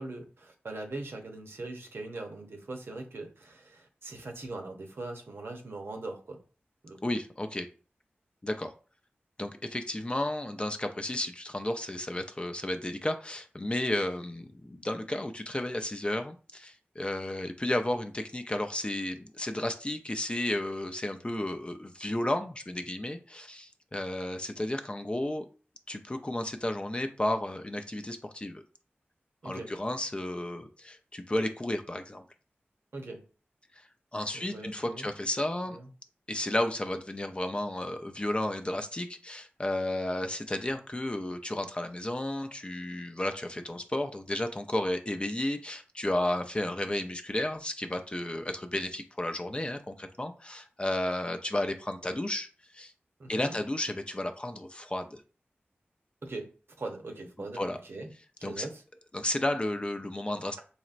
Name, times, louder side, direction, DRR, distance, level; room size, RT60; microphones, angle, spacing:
voice 1, 0.0-6.4 6.8-7.0 29.4-29.7 32.9-33.2 34.5-35.1 35.7-35.9 53.2-53.6 56.2-56.5 56.8-58.1 58.4-58.8, right 2 dB, 65° right, 3 dB, 0.8 m, -41 dB
voice 2, 7.0-7.7 8.4-8.7 9.4-25.4 25.9-28.6 29.4-32.2 34.1-35.8 36.3-52.5 52.7-52.9 53.3-55.2 57.5-57.8 58.4-58.7 59.1-60.6, left 1 dB, 25° left, 6 dB, 0.5 m, -33 dB
4.2 x 3.0 x 2.5 m, 0.36 s
wide cardioid pair, 55°, 4 cm